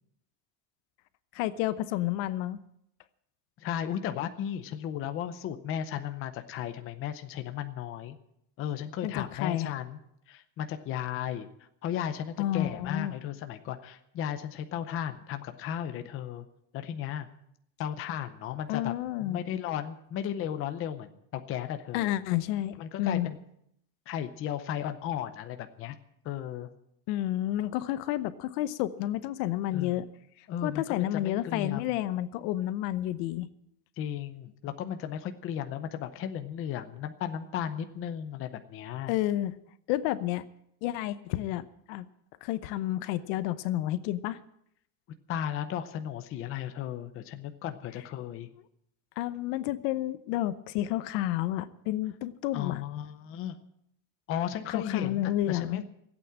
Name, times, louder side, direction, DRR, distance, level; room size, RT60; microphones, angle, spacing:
voice 1, 1.3-2.6 9.0-9.7 12.4-13.1 18.7-19.4 21.9-23.3 27.1-30.1 30.6-33.5 39.1-39.6 39.9-40.4 40.8-42.1 42.4-44.4 49.2-52.8 54.7-55.8, left 14 dB, 75° left, 14 dB, 1.0 m, -30 dB
voice 2, 3.6-8.2 8.6-10.0 10.3-11.5 11.8-16.5 16.7-17.3 17.8-18.9 19.2-22.1 22.8-23.4 24.1-26.0 26.2-26.7 29.7-30.0 30.5-31.9 34.0-39.1 45.3-48.5 52.5-53.6 54.3-55.8, left 9 dB, 25° left, 8 dB, 0.6 m, -35 dB
16.0 x 8.6 x 8.6 m, 0.75 s
cardioid pair, 180°, 49 cm